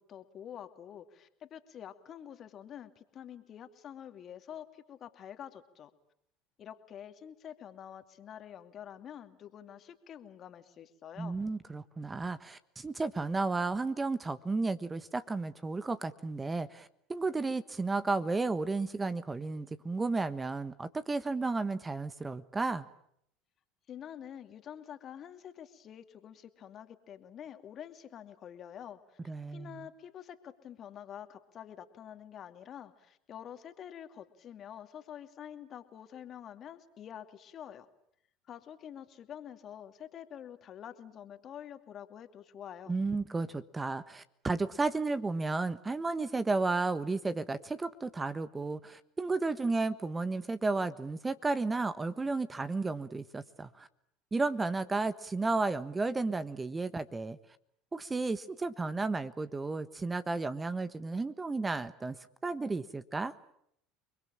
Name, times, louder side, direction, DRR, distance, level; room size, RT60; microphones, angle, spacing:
voice 1, 0.1-5.9 6.6-11.4 23.9-29.2 29.5-37.9 38.5-43.0, left 9 dB, 45° left, 8 dB, 2.6 m, -47 dB
voice 2, 11.2-22.8 29.3-29.8 42.9-53.9 54.3-57.4 57.9-62.2 62.4-63.3, right 3 dB, 20° right, 13 dB, 1.4 m, -33 dB
29.5 x 21.5 x 8.9 m, 0.72 s
hypercardioid pair, 80°, 0 cm